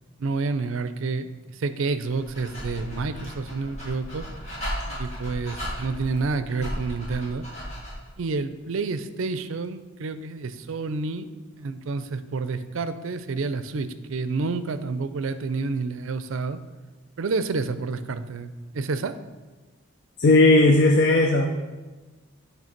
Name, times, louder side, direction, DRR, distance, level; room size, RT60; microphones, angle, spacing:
voice 1, 0.2-1.3 1.6-4.2 4.9-7.5 8.2-11.3 11.6-16.6 17.2-19.1, right 4 dB, 65° right, 12 dB, 0.4 m, -29 dB
Dog, 2.0-8.1, equal, 30° left, 2.3 m, -35 dB
voice 2, 20.2-21.5, left 2 dB, 50° left, 4 dB, 0.4 m, -16 dB
8.9 x 3.3 x 5.8 m, 1.2 s
head